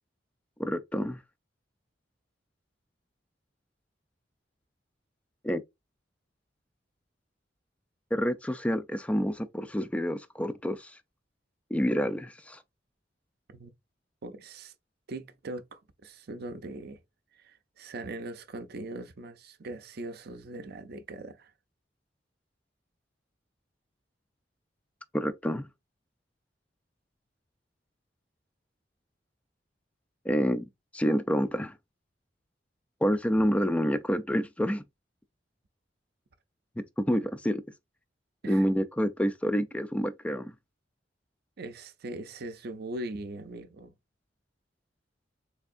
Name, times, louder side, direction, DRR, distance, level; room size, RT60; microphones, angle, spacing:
voice 1, 0.6-1.2 5.4-5.6 8.1-11.0 11.7-12.6 25.1-25.7 30.3-31.7 33.0-34.8 36.8-37.6 38.5-40.5, equal, 5° left, 0.3 m, -28 dB
voice 2, 14.2-14.7 15.1-17.0 17.3-21.5 37.1-37.3 38.4-38.7 41.6-43.9, right 2 dB, 60° right, 0.6 m, -40 dB
3.5 x 3.3 x 2.4 m
head